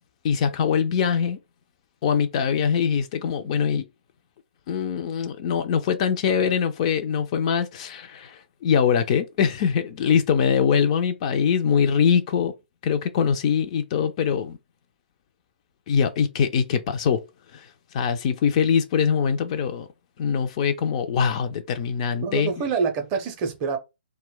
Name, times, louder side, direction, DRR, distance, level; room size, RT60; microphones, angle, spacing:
voice 1, 0.2-1.4 2.0-3.8 4.7-12.5 12.8-14.6 15.9-17.2 17.5-17.7 17.9-19.9 20.2-22.5, left 7 dB, 35° left, 0.3 m, -23 dB
voice 2, 22.2-23.8, right 5 dB, 25° right, 0.5 m, -26 dB
2.1 x 2.1 x 3.6 m
figure-of-eight pair, 140°, 6 cm